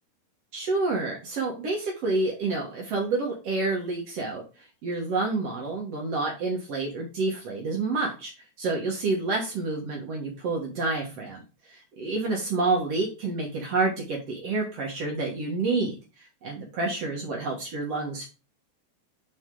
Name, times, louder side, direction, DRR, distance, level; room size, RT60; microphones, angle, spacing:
voice 1, 0.5-4.4 4.8-8.3 8.6-11.4 11.7-16.0 16.4-18.3, right 3 dB, 80° right, -1 dB, 1.4 m, -28 dB
6.9 x 4.7 x 3.8 m, 0.32 s
omnidirectional pair, 4.8 m